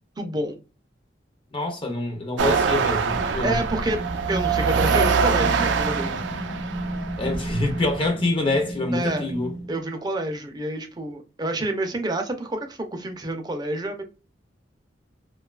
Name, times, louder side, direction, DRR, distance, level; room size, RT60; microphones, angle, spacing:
voice 1, 0.2-0.6 3.4-4.0 4.3-6.2 8.9-9.3 9.7-14.0, right 1 dB, 20° right, 0.5 m, -28 dB
voice 2, 1.5-3.6 7.2-9.5, left 2 dB, 30° left, 0.5 m, -26 dB
sound 1, 2.4-8.1, right 5 dB, 85° right, 0.4 m, -24 dB
sound 2, 3.1-9.8, right 1 dB, 85° left, 0.9 m, -34 dB
2.6 x 2.2 x 2.2 m
head